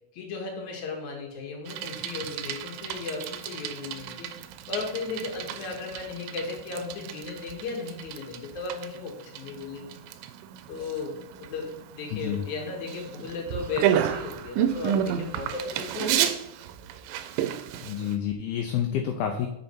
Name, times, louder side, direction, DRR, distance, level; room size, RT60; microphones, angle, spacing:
voice 1, 0.1-4.3 4.7-9.8 10.7-16.3, left 4 dB, 55° left, 0 dB, 2.5 m, -35 dB
Bicycle, 1.7-18.2, right 10 dB, 85° right, 2.8 m, -32 dB
voice 2, 12.1-12.4 17.8-19.5, left 9 dB, 80° left, 4 dB, 2.4 m, -29 dB
7.0 x 6.5 x 4.4 m, 0.81 s
omnidirectional pair, 5.0 m